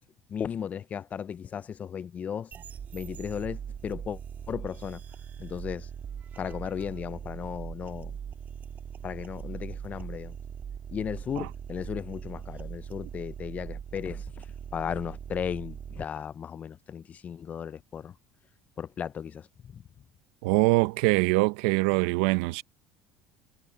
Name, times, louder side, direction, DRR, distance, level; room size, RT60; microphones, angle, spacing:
voice 1, 0.3-2.5 2.9-4.2 4.5-5.0 5.4-5.9 6.4-8.1 9.0-10.3 10.9-14.2 14.7-18.1 18.8-19.8, left 8 dB, 35° left, 0.4 m, -35 dB
sound 1, 2.5-16.0, right 8 dB, 40° right, 1.5 m, -41 dB
voice 2, 20.4-22.6, right 23 dB, 90° right, 0.6 m, -23 dB
cardioid pair, 115°, 5 cm